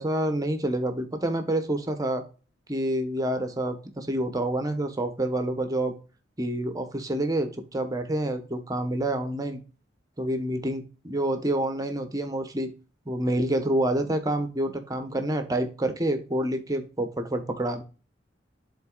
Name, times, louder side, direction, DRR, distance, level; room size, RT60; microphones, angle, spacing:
voice 1, 0.0-2.2 2.7-5.9 6.4-9.6 10.2-12.7 13.1-17.8, right 1 dB, 20° right, 7 dB, 1.0 m, -28 dB
11.5 x 4.0 x 2.4 m, 0.34 s
head